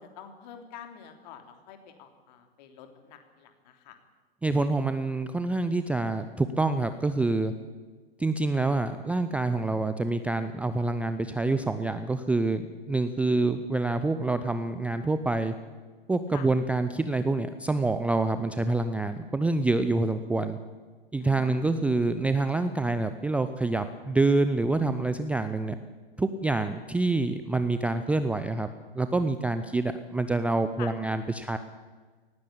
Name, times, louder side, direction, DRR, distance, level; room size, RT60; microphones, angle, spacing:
voice 1, 0.0-3.9 16.3-16.4 21.2-21.6 30.8-30.9, left 8 dB, 45° left, 6 dB, 3.2 m, -46 dB
voice 2, 4.4-7.5 8.2-15.5 16.1-20.6 21.1-25.8 26.2-28.7 28.9-31.6, right 2 dB, 5° right, 10 dB, 0.5 m, -27 dB
19.0 x 16.0 x 8.6 m, 1.4 s
figure-of-eight pair, 100°, 30 cm